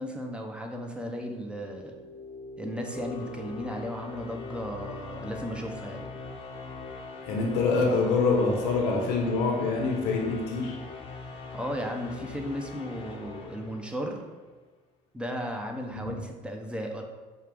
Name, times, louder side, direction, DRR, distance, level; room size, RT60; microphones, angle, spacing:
voice 1, 0.0-2.0 2.6-6.1 11.5-14.2 15.1-17.0, equal, 5° right, 2 dB, 0.7 m, -35 dB
sound 1, 1.3-14.4, left 3 dB, 35° left, 0.8 m, -41 dB
voice 2, 7.3-10.8 16.0-16.1, left 3 dB, 80° left, 0 dB, 1.0 m, -25 dB
6.3 x 2.4 x 3.5 m, 1.3 s
supercardioid pair, 95°, 16 cm